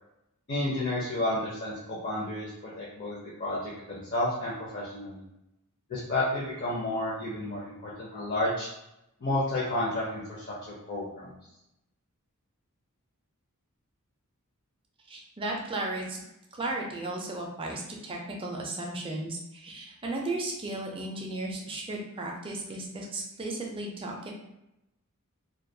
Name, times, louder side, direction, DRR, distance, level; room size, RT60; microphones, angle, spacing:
voice 1, 0.5-2.5 2.8-5.2 5.9-8.7 9.2-10.4 10.9-11.3, left 1 dB, 40° left, -6 dB, 0.5 m, -31 dB
voice 2, 15.1-16.2 16.5-24.3, right 2 dB, 25° right, 0 dB, 0.4 m, -35 dB
2.3 x 2.2 x 2.6 m, 0.88 s
head